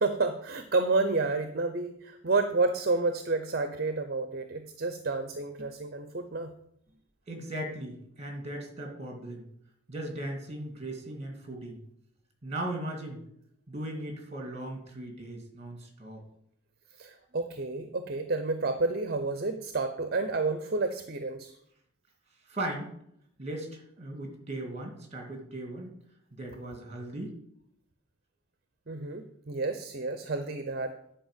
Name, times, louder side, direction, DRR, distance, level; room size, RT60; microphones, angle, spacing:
voice 1, 0.0-6.5 17.0-21.5 28.9-30.9, right 3 dB, 45° right, 8 dB, 0.7 m, -30 dB
voice 2, 7.3-9.5 9.9-11.8 12.4-13.2 13.7-16.2 22.5-22.9 23.4-25.9 26.3-27.4, right 1 dB, 30° right, 3 dB, 2.3 m, -38 dB
10.0 x 5.0 x 7.4 m, 0.74 s
head